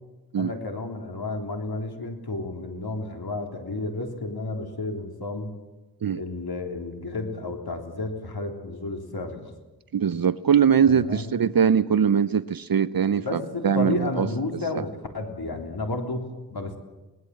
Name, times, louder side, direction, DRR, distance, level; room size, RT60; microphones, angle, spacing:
voice 1, 0.3-5.5 6.1-9.5 10.9-11.4 13.2-16.8, left 2 dB, 75° left, 3 dB, 3.6 m, -32 dB
voice 2, 9.9-14.3 14.7-14.8, right 7 dB, 65° right, 15 dB, 0.6 m, -22 dB
22.5 x 19.5 x 7.7 m, 1.1 s
wide cardioid pair, 60°, 38 cm